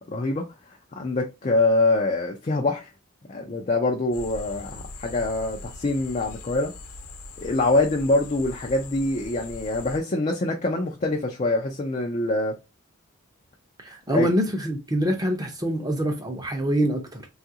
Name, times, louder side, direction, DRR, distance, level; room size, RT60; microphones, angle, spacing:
voice 1, 0.1-0.4 1.0-2.9 3.3-6.7 7.4-12.6 14.1-14.3, left 2 dB, 30° left, 0.4 m, -24 dB
sound 1, 4.1-10.0, left 3 dB, 90° left, 0.8 m, -41 dB
voice 2, 13.8-17.3, right 1 dB, 15° right, 0.6 m, -25 dB
3.7 x 2.4 x 2.7 m
head